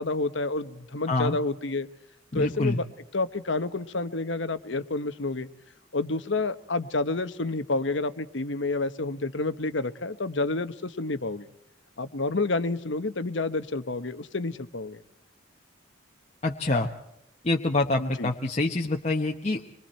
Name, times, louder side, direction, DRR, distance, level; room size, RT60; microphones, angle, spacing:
voice 1, 0.0-1.9 2.3-2.9 3.1-5.5 5.9-11.5 12.0-15.0 18.0-18.3, left 3 dB, 65° left, 12 dB, 1.1 m, -29 dB
voice 2, 2.3-2.8 16.4-16.9 17.4-19.6, left 2 dB, 35° left, 0 dB, 1.1 m, -26 dB
26.0 x 22.5 x 4.4 m, 0.77 s
head